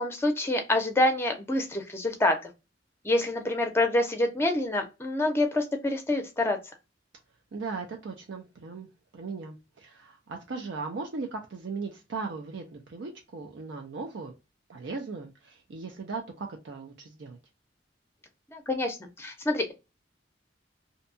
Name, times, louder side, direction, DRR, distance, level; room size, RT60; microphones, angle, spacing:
voice 1, 0.0-2.4 3.0-6.6 18.5-19.7, left 1 dB, 15° left, 5 dB, 0.5 m, -26 dB
voice 2, 7.5-14.3 14.7-17.4, right 4 dB, 70° right, 2 dB, 0.5 m, -38 dB
2.7 x 2.2 x 2.5 m, 0.26 s
head